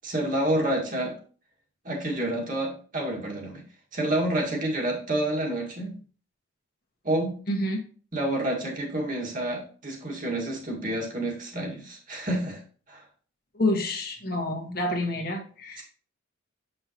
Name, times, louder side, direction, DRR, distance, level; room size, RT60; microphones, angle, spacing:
voice 1, 0.0-1.1 1.8-3.6 3.9-6.0 7.0-7.3 8.1-12.6 12.9-13.0 15.8-15.9, right 1 dB, 40° right, -1 dB, 1.9 m, -28 dB
voice 2, 7.5-7.8 13.5-15.8, left 1 dB, 50° left, 2 dB, 1.3 m, -28 dB
7.6 x 5.5 x 3.0 m, 0.41 s
head